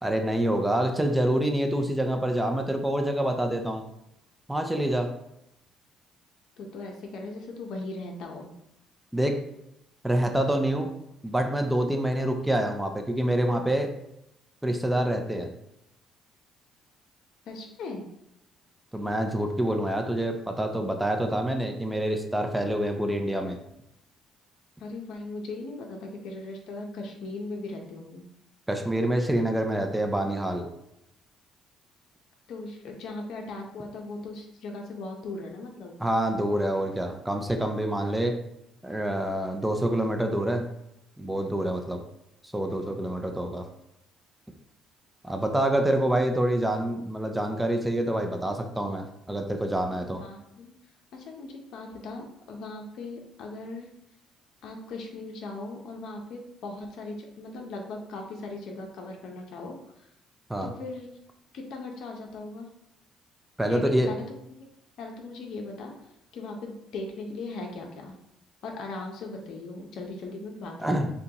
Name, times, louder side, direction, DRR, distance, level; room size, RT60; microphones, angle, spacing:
voice 1, 0.0-3.8 4.5-5.1 9.1-9.4 10.0-10.9 11.2-13.9 14.6-15.5 18.9-23.6 28.7-30.7 36.0-38.3 38.8-40.6 41.2-42.0 42.4-43.6 45.2-50.2 60.5-60.7 63.6-64.1 70.8-71.1, right 1 dB, 5° right, 4 dB, 0.6 m, -26 dB
voice 2, 6.6-8.5 17.5-18.0 24.8-28.2 32.5-36.0 49.8-50.7 51.1-53.9 54.6-60.1 60.6-61.1 61.5-62.7 63.7-64.2 65.0-65.9 66.3-68.1 68.6-71.0, left 2 dB, 70° left, 1 dB, 0.7 m, -38 dB
6.7 x 2.3 x 2.9 m, 0.81 s
supercardioid pair, 80°, 0 cm